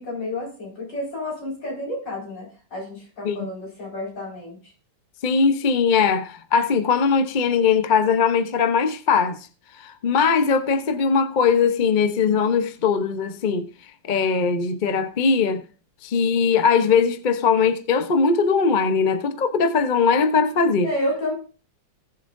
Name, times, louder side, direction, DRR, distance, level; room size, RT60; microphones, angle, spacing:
voice 1, 0.0-4.6 20.8-21.3, left 1 dB, 65° left, 5.8 m, -30 dB
voice 2, 5.2-9.5 9.8-13.7 14.0-15.6 16.0-20.9, left 5 dB, 45° left, 0.6 m, -20 dB
19.5 x 7.4 x 2.6 m
omnidirectional pair, 2.0 m